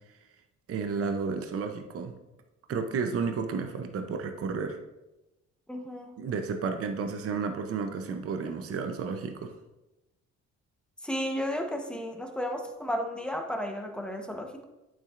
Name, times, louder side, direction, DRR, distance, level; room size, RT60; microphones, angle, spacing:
voice 1, 0.7-2.1 2.7-4.8 6.2-9.5, right 5 dB, 50° right, 6 dB, 0.7 m, -32 dB
voice 2, 5.7-6.1 11.0-14.6, equal, 5° left, 3 dB, 1.0 m, -33 dB
8.3 x 7.2 x 2.5 m, 1.0 s
cardioid pair, 90°, 30 cm